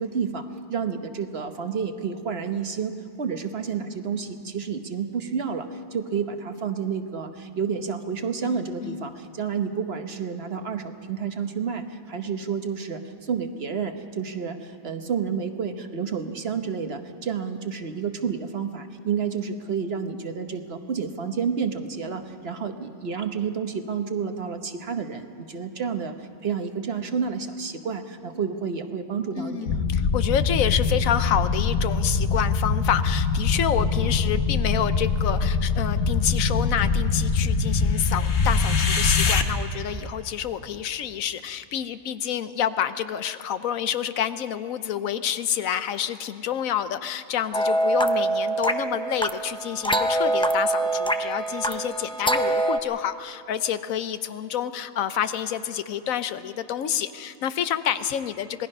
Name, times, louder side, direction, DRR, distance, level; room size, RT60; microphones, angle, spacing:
voice 1, 0.0-29.8, right 6 dB, 50° right, 7 dB, 1.2 m, -30 dB
voice 2, 8.4-9.0 29.4-58.7, left 9 dB, 80° left, 12 dB, 1.2 m, -28 dB
sound 1, 29.7-39.4, left 4 dB, 55° left, 1.2 m, -23 dB
sound 2, 47.5-52.8, right 1 dB, 10° left, 0.3 m, -24 dB
26.5 x 19.0 x 5.4 m, 2.6 s
omnidirectional pair, 1.4 m